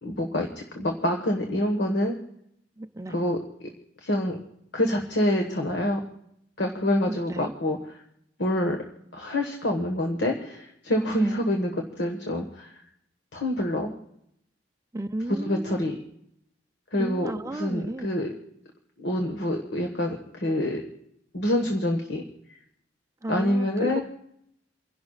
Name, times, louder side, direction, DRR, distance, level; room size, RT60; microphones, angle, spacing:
voice 1, 0.0-2.1 3.1-3.4 4.0-4.4 4.7-6.0 6.6-7.8 8.4-8.8 9.1-12.7 13.3-13.9 15.3-15.9 16.9-18.3 19.0-20.8 21.3-22.2 23.3-24.0, left 1 dB, 65° left, 1.5 m, -26 dB
voice 2, 2.8-3.2 7.1-7.5 11.2-11.4 14.9-15.9 17.0-18.1 23.2-24.0, right 1 dB, 15° right, 0.5 m, -33 dB
29.5 x 11.5 x 2.4 m
head